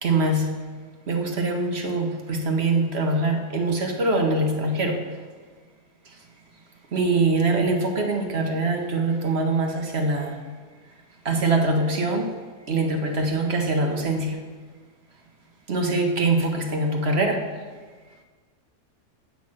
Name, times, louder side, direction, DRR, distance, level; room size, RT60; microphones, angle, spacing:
voice 1, 0.0-0.6 1.1-5.0 6.9-10.4 11.2-12.3 12.7-14.4 15.7-17.5, right 2 dB, 50° right, 3 dB, 0.9 m, -23 dB
8.5 x 5.7 x 7.6 m, 1.5 s
omnidirectional pair, 1.8 m